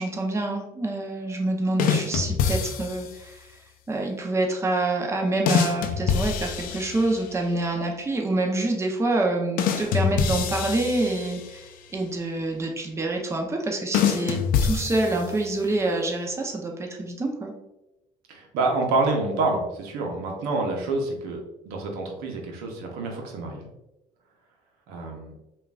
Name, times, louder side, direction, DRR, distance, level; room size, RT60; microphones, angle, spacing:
voice 1, 0.0-3.5 3.9-11.6 11.9-17.5, right 2 dB, 15° right, 2 dB, 0.7 m, -26 dB
sound 1, 1.8-3.2 5.5-7.4 9.6-11.7 13.9-15.6, left 7 dB, 65° left, 0.5 m, -26 dB
voice 2, 18.3-23.7 24.9-25.3, right 3 dB, 75° right, 1 dB, 0.8 m, -27 dB
5.1 x 2.5 x 2.4 m, 0.95 s
supercardioid pair, 85°, 16 cm